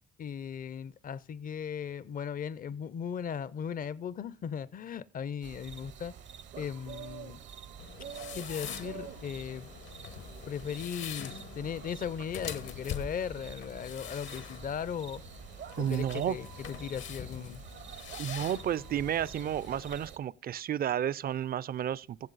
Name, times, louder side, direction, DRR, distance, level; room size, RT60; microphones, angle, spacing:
voice 1, 0.2-6.2 6.6-7.4 8.3-9.7 10.5-15.2 15.8-17.6, left 7 dB, 45° left, 0.5 m, -37 dB
sound 1, 5.4-20.2, right 8 dB, 65° right, 0.8 m, -47 dB
sound 2, 7.8-20.0, left 8 dB, 70° left, 1.1 m, -44 dB
voice 2, 15.8-16.4 18.2-22.2, right 10 dB, 50° right, 0.4 m, -31 dB
15.5 x 7.3 x 4.0 m
cardioid pair, 90°, 20 cm